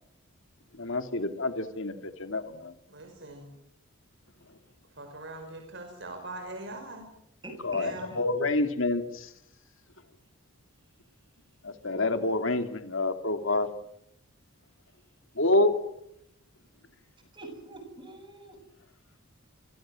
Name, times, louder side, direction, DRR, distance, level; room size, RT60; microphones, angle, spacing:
voice 1, 0.8-2.7 7.6-7.9 8.2-9.3 11.6-13.7 15.4-15.7, left 2 dB, 60° left, 8 dB, 2.7 m, -27 dB
voice 2, 2.9-3.5 4.9-7.1 7.8-8.1, right 2 dB, 50° right, 4 dB, 5.4 m, -42 dB
voice 3, 7.4-8.2 17.3-18.6, right 2 dB, 20° right, 6 dB, 7.5 m, -45 dB
29.5 x 25.0 x 7.8 m, 0.78 s
head